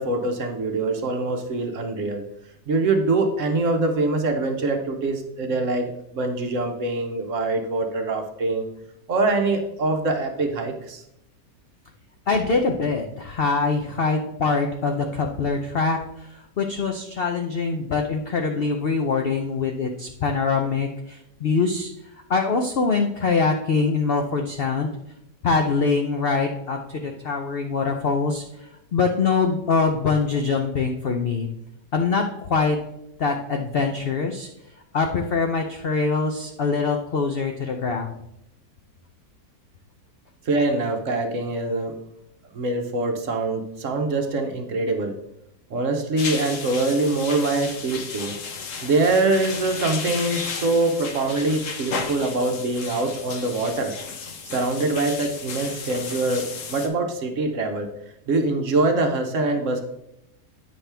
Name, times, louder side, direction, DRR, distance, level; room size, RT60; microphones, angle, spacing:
voice 1, 0.0-2.2 2.7-8.7 9.1-11.0 40.4-42.0 42.5-45.2 45.7-48.4 48.8-54.0 54.4-57.9 58.3-59.8, right 2 dB, 55° right, 5 dB, 1.0 m, -24 dB
voice 2, 12.3-24.9 25.4-31.5 31.9-32.8 33.2-34.5 34.9-38.2, left 4 dB, 85° left, 4 dB, 0.5 m, -24 dB
sound 1, 46.2-56.9, left 5 dB, 55° left, 1.1 m, -34 dB
8.8 x 5.8 x 3.4 m, 0.83 s
omnidirectional pair, 1.8 m